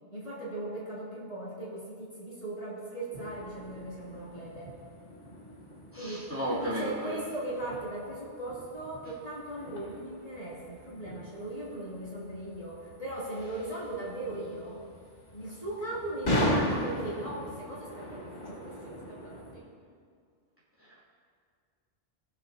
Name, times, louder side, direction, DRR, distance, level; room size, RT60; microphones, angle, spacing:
voice 1, 0.1-4.8 5.9-14.8 15.3-19.6, right 1 dB, 30° left, -9 dB, 3.0 m, -38 dB
sound 1, 3.1-19.6, equal, 85° left, 2.5 m, -38 dB
voice 2, 5.9-7.2 20.8-21.0, right 1 dB, 10° right, -9 dB, 2.7 m, -34 dB
20.0 x 7.2 x 2.9 m, 2.1 s
omnidirectional pair, 1.2 m